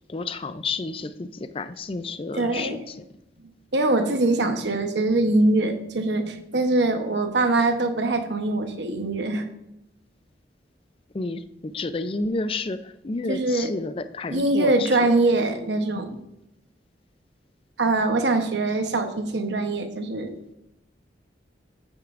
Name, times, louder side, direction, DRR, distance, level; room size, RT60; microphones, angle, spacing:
voice 1, 0.1-3.1 11.1-15.1, left 3 dB, 30° left, 11 dB, 0.4 m, -31 dB
voice 2, 2.4-2.8 3.7-9.5 13.3-13.7 14.3-16.1 17.8-20.3, right 2 dB, 75° right, 7 dB, 1.0 m, -23 dB
9.1 x 8.9 x 2.5 m, 0.84 s
head